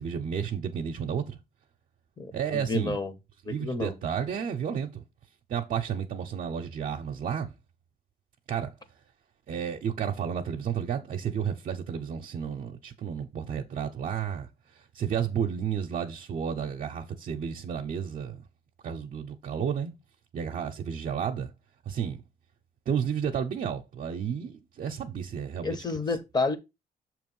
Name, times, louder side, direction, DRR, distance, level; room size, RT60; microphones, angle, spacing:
voice 1, 0.0-1.4 2.3-3.0 3.5-5.0 5.5-7.6 8.5-8.7 9.5-18.4 18.8-19.9 20.3-21.5 21.9-22.2 22.9-25.8, right 8 dB, 60° right, 0.7 m, -32 dB
voice 2, 2.2-3.1 3.5-3.9 25.6-26.6, left 3 dB, 25° left, 0.9 m, -30 dB
6.6 x 3.0 x 5.3 m
cardioid pair, 120°, 16 cm